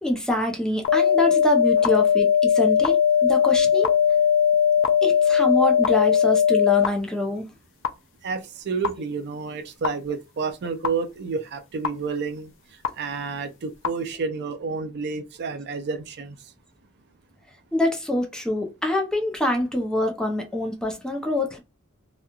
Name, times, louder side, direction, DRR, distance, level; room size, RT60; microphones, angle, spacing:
voice 1, 0.0-3.9 5.0-7.5 17.7-21.6, left 1 dB, 5° left, 0.6 m, -25 dB
sound 1, 0.8-6.9 7.8-7.9 8.8-8.9 9.8-9.9 10.8-10.9 11.8-11.9 12.8-12.9 13.8-13.9, left 8 dB, 65° left, 0.4 m, -19 dB
voice 2, 8.2-12.5 13.0-16.4, right 5 dB, 55° right, 0.4 m, -30 dB
3.0 x 2.3 x 2.3 m
head